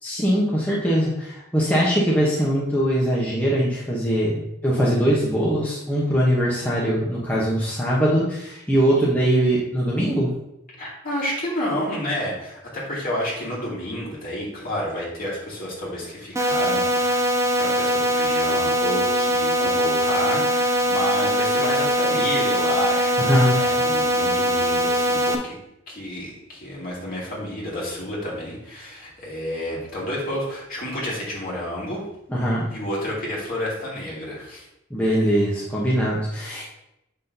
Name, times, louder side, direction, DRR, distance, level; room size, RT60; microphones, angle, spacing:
voice 1, 0.0-10.3 23.2-23.6 32.3-32.7 34.9-36.6, equal, 10° left, -6 dB, 0.9 m, -21 dB
voice 2, 10.8-25.6 25.9-32.0 32.7-34.7, equal, 45° left, -5 dB, 2.5 m, -30 dB
sound 1, 16.4-25.4, equal, 15° right, 0.6 m, -21 dB
7.1 x 5.9 x 2.7 m, 0.84 s
head